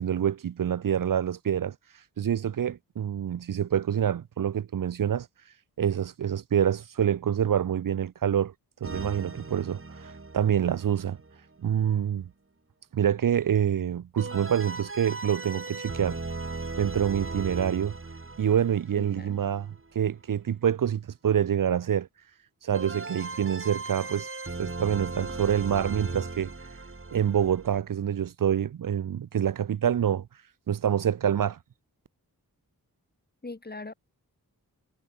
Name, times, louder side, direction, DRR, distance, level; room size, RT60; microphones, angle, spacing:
voice 1, 0.0-1.7 2.2-5.3 5.8-8.5 8.8-11.2 11.6-12.3 12.9-16.2 16.8-17.9 18.4-22.1 22.6-24.3 24.6-26.5 27.1-30.3 30.7-31.6, right 9 dB, 60° right, 0.7 m, -26 dB
sound 1, 8.8-11.6 14.2-19.9 22.7-27.8, right 3 dB, 35° right, 4.7 m, -38 dB
voice 2, 18.9-19.4 33.4-33.9, left 3 dB, 25° left, 2.2 m, -40 dB
cardioid pair, 65°, 37 cm